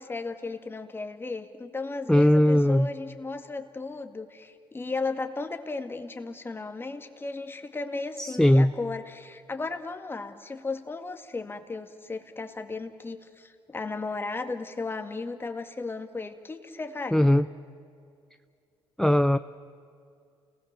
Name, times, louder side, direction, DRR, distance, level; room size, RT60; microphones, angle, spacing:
voice 1, 0.0-17.3, left 3 dB, 25° left, 6 dB, 2.2 m, -35 dB
voice 2, 2.1-2.9 8.2-8.7 17.1-17.5 19.0-19.4, left 1 dB, 5° left, 13 dB, 0.5 m, -19 dB
29.5 x 19.5 x 7.0 m, 2.3 s
cardioid pair, 90°, 10 cm